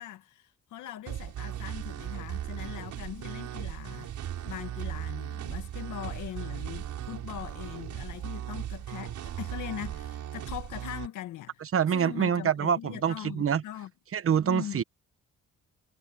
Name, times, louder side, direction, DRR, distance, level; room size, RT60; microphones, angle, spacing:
voice 1, 0.0-4.1 4.5-13.9 14.4-14.8, left 12 dB, 80° left, 1.9 m, -41 dB
sound 1, 1.1-11.1, right 11 dB, 75° right, 5.4 m, -37 dB
voice 2, 11.7-13.6 14.1-14.8, right 8 dB, 45° right, 1.2 m, -26 dB
cardioid pair, 90°, 30 cm